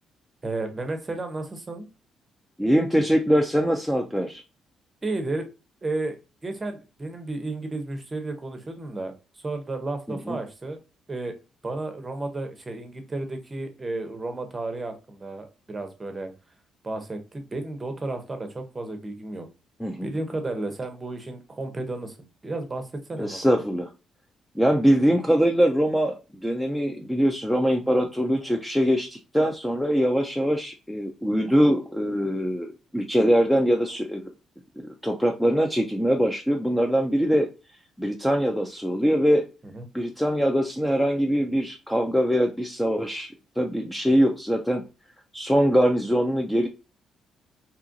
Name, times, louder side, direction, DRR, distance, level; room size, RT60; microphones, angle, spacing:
voice 1, 0.4-1.9 5.0-5.5 5.8-6.2 6.4-10.8 11.1-11.4 11.6-16.3 16.8-19.5 20.0-23.6 39.6-39.8, right 2 dB, 25° right, 6 dB, 0.7 m, -33 dB
voice 2, 2.6-4.4 10.1-10.4 19.8-20.1 23.2-23.9 24.6-26.1 26.4-34.2 35.0-37.5 38.0-39.4 39.9-44.8 45.3-46.7, equal, 5° left, 4 dB, 0.4 m, -23 dB
2.8 x 2.4 x 2.5 m, 0.29 s
cardioid pair, 90°, 0 cm